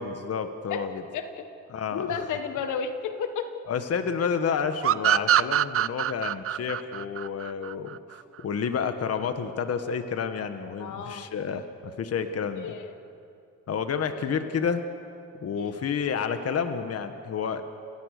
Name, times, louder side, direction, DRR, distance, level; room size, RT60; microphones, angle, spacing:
voice 1, 0.0-1.0 1.7-2.1 3.7-12.7 13.7-14.8 15.3-17.6, left 6 dB, 55° left, 8 dB, 1.5 m, -30 dB
voice 2, 1.1-1.4 1.9-3.4 10.8-11.3 12.5-12.9 14.1-14.4 15.5-15.6, left 6 dB, 80° left, 8 dB, 1.6 m, -33 dB
sound 1, 4.8-8.2, right 11 dB, 50° right, 0.6 m, -24 dB
29.0 x 18.0 x 6.7 m, 2.5 s
cardioid pair, 90°, 30 cm